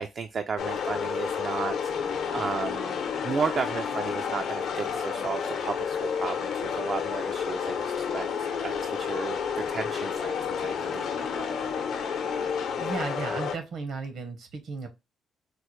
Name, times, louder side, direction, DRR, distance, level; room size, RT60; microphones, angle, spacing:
voice 1, 0.0-8.3 8.6-11.6, right 5 dB, 50° right, 0.3 m, -34 dB
sound 1, 0.6-13.6, left 6 dB, 75° left, 0.7 m, -30 dB
voice 2, 12.8-14.9, right 4 dB, 65° right, 0.9 m, -34 dB
4.4 x 2.1 x 3.0 m
cardioid pair, 90°, 0 cm